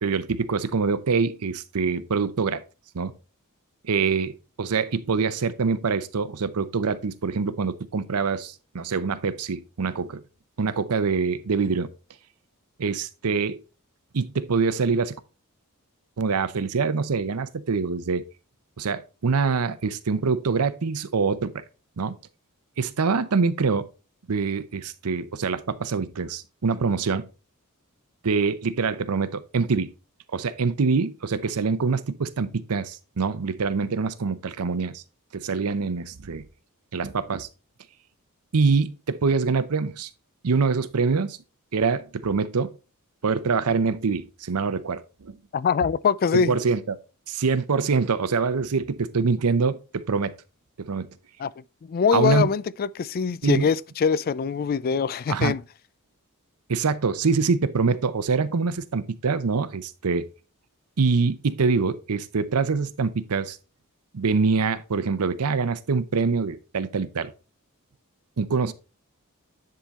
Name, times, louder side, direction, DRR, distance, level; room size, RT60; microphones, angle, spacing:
voice 1, 0.0-2.6 2.9-3.1 3.8-4.3 4.6-10.2 10.6-11.9 12.8-13.6 14.1-15.2 16.2-18.2 18.8-21.6 22.0-22.1 22.8-23.9 24.3-27.2 28.2-29.9 30.3-35.0 35.3-36.4 36.9-37.5 38.5-40.1 40.4-41.4 41.7-42.8 43.2-45.4 46.3-47.0 47.3-50.3 50.8-51.1 52.1-52.5 53.4-53.7 55.3-55.6 56.7-60.3 61.0-63.6 64.1-67.3 68.4-68.7, right 4 dB, 90° right, 0.7 m, -25 dB
voice 2, 45.5-46.6 51.4-55.6, left 6 dB, 45° left, 0.3 m, -23 dB
10.0 x 3.8 x 4.1 m
head